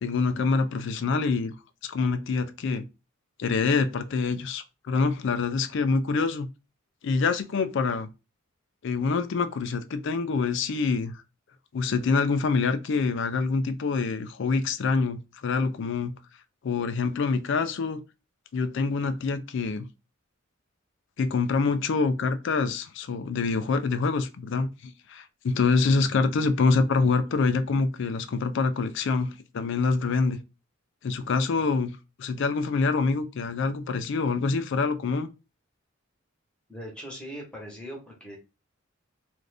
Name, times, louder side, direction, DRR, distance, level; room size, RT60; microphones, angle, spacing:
voice 1, 0.0-1.5 1.8-2.8 3.4-6.5 7.0-8.1 8.8-11.1 11.7-16.1 16.6-18.0 18.5-19.9 21.2-30.4 31.0-31.9 32.2-35.3, left 4 dB, 60° left, 0.4 m, -26 dB
voice 2, 36.7-38.4, equal, 5° left, 1.0 m, -40 dB
2.5 x 2.4 x 3.3 m
head